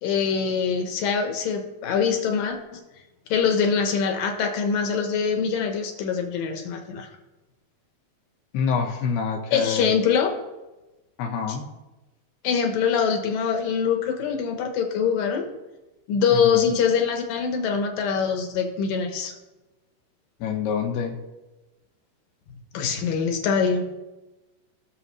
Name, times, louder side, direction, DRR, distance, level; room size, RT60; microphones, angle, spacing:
voice 1, 0.0-2.8 3.3-7.1 9.5-10.3 12.4-15.5 16.1-19.3 22.7-23.9, left 6 dB, 70° left, 4 dB, 2.5 m, -24 dB
voice 2, 8.5-9.9 11.2-11.7 16.3-16.7 20.4-21.2, left 6 dB, 85° left, 3 dB, 3.2 m, -26 dB
19.0 x 6.4 x 3.2 m, 1.1 s
omnidirectional pair, 4.6 m